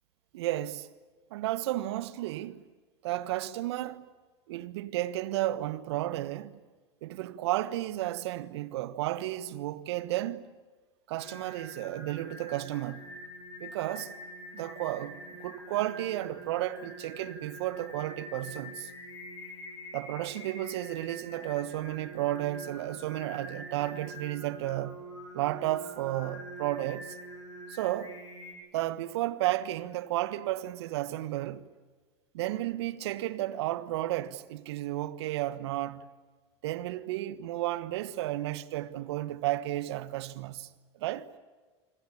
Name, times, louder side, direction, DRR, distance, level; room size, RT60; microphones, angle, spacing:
voice 1, 0.3-0.9 1.3-2.6 3.0-4.1 4.5-6.6 7.0-10.5 11.1-13.1 13.6-14.1 14.5-18.9 19.9-25.0 25.3-27.2 27.7-28.1 28.7-31.7 32.3-36.1 36.6-40.7 41.0-41.3, right 15 dB, 70° right, 1.4 m, -33 dB
Singing, 11.2-28.5, equal, 85° left, 7.7 m, -45 dB
27.0 x 25.5 x 8.5 m
hypercardioid pair, 75°, 15 cm